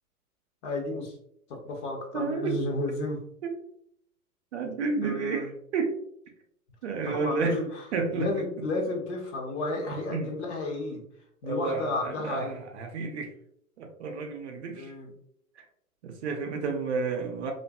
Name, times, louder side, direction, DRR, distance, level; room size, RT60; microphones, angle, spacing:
voice 1, 0.6-1.2 1.5-3.2 4.6-4.7 5.0-5.5 7.0-7.8 8.1-11.0 11.4-12.6 14.7-15.1, left 2 dB, 50° left, 0 dB, 0.9 m, -32 dB
voice 2, 2.1-2.6 3.4-3.5 4.5-6.0 6.8-7.6 7.9-8.3 10.1-10.3 11.4-12.5 12.7-13.3 13.8-14.9 16.0-17.5, right 4 dB, 50° right, 3 dB, 0.5 m, -31 dB
2.5 x 2.5 x 2.2 m, 0.72 s
figure-of-eight pair, 105°, 45 cm